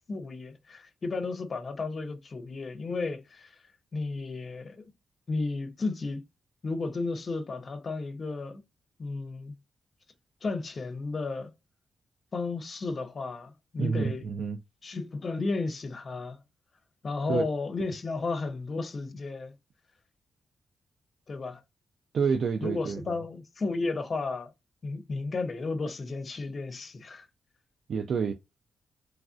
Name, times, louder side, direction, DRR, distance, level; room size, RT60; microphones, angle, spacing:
voice 1, 0.1-3.6 3.9-4.8 5.3-6.2 6.6-8.6 9.0-9.5 10.4-11.5 12.3-14.2 14.8-16.4 17.0-19.5 21.3-21.6 22.6-24.5 24.8-27.3, left 3 dB, 45° left, 0.5 m, -33 dB
voice 2, 13.8-14.6 17.3-17.4 22.1-23.2 27.9-28.3, right 6 dB, 65° right, 0.3 m, -28 dB
3.1 x 2.5 x 2.3 m
cardioid pair, 105°, 0 cm